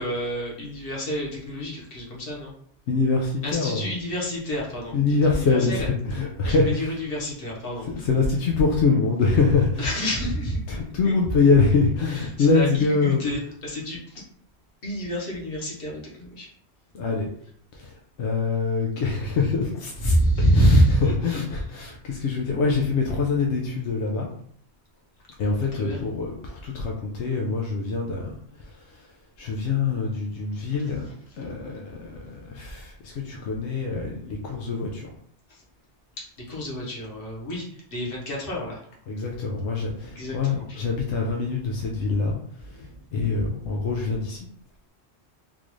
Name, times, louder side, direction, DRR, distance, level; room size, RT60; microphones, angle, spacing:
voice 1, 0.0-2.5 3.4-5.9 6.4-8.1 9.8-11.1 12.1-14.2 14.8-16.5 20.0-21.4 25.7-26.0 35.5-35.6 36.2-38.8 40.1-40.9 42.7-43.4, equal, 55° left, -4 dB, 1.4 m, -27 dB
voice 2, 2.9-3.9 4.9-6.9 7.9-9.9 10.7-13.2 16.9-17.3 17.7-17.9 18.2-20.1 20.5-20.8 21.2-24.3 25.4-29.1 29.4-31.1 31.4-35.1 39.1-42.9 43.1-44.5, left 4 dB, 85° left, 0 dB, 0.9 m, -24 dB
3.8 x 2.5 x 3.1 m, 0.62 s
omnidirectional pair, 1.1 m